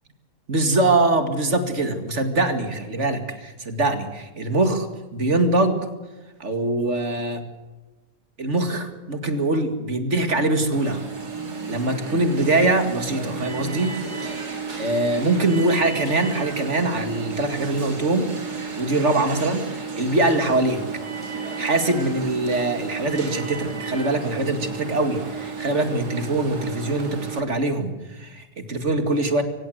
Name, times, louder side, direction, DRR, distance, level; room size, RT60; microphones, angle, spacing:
voice 1, 0.5-4.9 5.1-5.9 6.4-7.4 8.4-11.0 11.7-18.3 18.8-20.8 21.6-29.4, right 2 dB, 45° right, 7 dB, 2.5 m, -23 dB
Alarm, 10.7-27.4, right 5 dB, 85° right, 3.2 m, -32 dB
25.0 x 16.0 x 8.0 m, 1.2 s
omnidirectional pair, 1.7 m